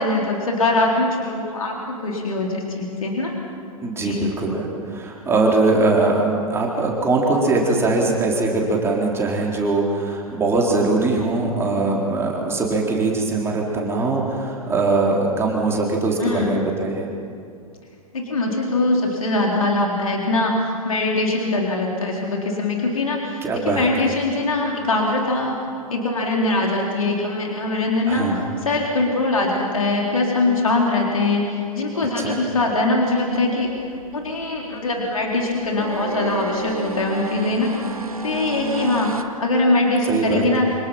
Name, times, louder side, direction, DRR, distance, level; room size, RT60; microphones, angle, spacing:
voice 1, 0.0-3.3 4.0-4.3 16.2-16.6 18.1-20.6 20.8-25.5 25.9-33.7 34.1-40.7, left 2 dB, 70° left, -1 dB, 3.9 m, -22 dB
voice 2, 3.8-17.1 23.4-23.9 28.1-28.4 32.2-32.3 40.1-40.4, right 3 dB, 15° right, -2 dB, 3.9 m, -21 dB
sound 1, 33.3-39.2, right 3 dB, 75° right, 1.7 m, -31 dB
29.0 x 26.5 x 5.8 m, 2.4 s
figure-of-eight pair, 105°, 18 cm